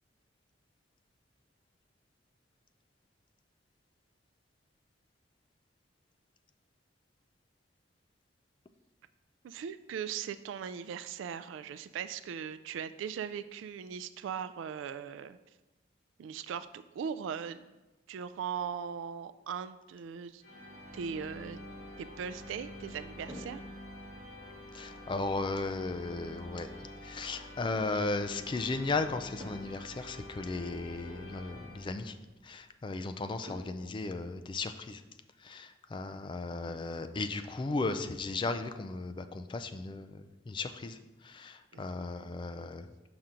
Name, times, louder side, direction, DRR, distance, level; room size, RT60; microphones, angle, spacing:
voice 1, 9.4-15.4 16.2-17.7 18.1-20.4 20.9-21.6 22.0-23.6 41.7-42.7, right 7 dB, 90° right, 14 dB, 0.3 m, -39 dB
sound 1, 20.4-32.4, left 1 dB, 75° left, 2.0 m, -47 dB
sound 2, 23.3-24.4 25.4-25.6 29.4-29.9 30.2-30.3 30.9-31.1 33.4-34.4 35.8-35.9 36.3-36.4 36.9-37.1 37.5-37.6 38.0-38.7, equal, 25° right, 1.1 m, -50 dB
voice 2, 24.7-26.7 27.0-32.1 32.4-35.0 35.4-41.0 41.2-42.9, left 3 dB, 25° left, 9 dB, 0.3 m, -36 dB
6.0 x 5.5 x 3.8 m, 1.1 s
head